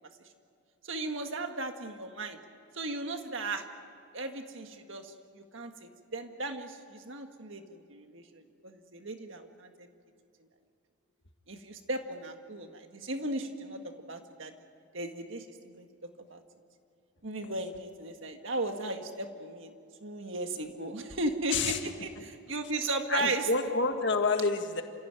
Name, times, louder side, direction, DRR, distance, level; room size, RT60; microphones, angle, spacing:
voice 1, 0.8-2.4 2.7-3.7 4.1-9.9 11.5-13.8 14.1-14.5 14.9-15.9 16.3-16.4 17.2-19.7 20.0-23.5, right 2 dB, 60° right, 5 dB, 1.8 m, -36 dB
voice 2, 23.1-24.8, left 3 dB, 50° left, 5 dB, 1.9 m, -28 dB
28.5 x 16.0 x 9.2 m, 2.5 s
head